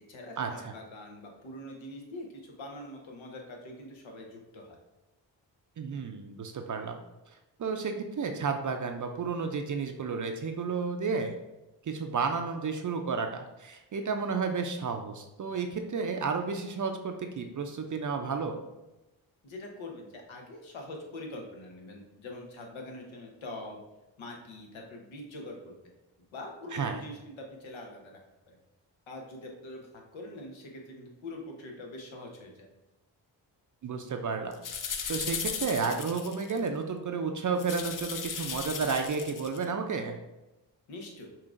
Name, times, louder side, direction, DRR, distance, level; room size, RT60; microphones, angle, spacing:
voice 1, 0.1-4.8 19.4-23.8 24.2-25.8 26.3-28.1 28.5-28.6 29.1-32.7 40.9-41.3, left 1 dB, 80° left, 1 dB, 1.0 m, -44 dB
voice 2, 5.8-7.0 7.6-11.4 11.8-18.6 26.7-27.0 33.8-34.5 35.1-40.2, right 5 dB, 40° right, 5 dB, 0.5 m, -32 dB
sound 1, 34.5-36.7 37.6-39.6, left 6 dB, 45° left, 0.5 m, -36 dB
5.5 x 2.5 x 2.5 m, 0.99 s
cardioid pair, 50°, 47 cm